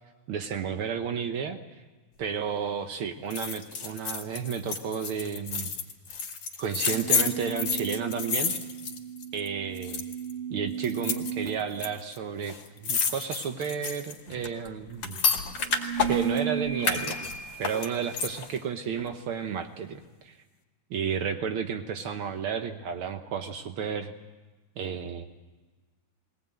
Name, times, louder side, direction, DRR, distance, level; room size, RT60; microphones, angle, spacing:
voice 1, 0.3-1.6 2.2-5.7 6.6-8.5 9.3-10.0 10.5-15.2 16.1-17.2 17.6-20.3 20.9-24.1 24.8-25.2, right 7 dB, 85° right, 6 dB, 1.1 m, -32 dB
sound 1, 3.3-9.5 9.8-10.3 10.8-11.9 12.1-12.2 12.4-16.4 16.8-18.6 19.0-19.1, left 6 dB, 55° left, 3.4 m, -30 dB
sound 2, 6.9-11.7 15.6-18.2, right 7 dB, 55° right, 3.1 m, -35 dB
22.0 x 18.0 x 9.1 m, 1.3 s
omnidirectional pair, 3.9 m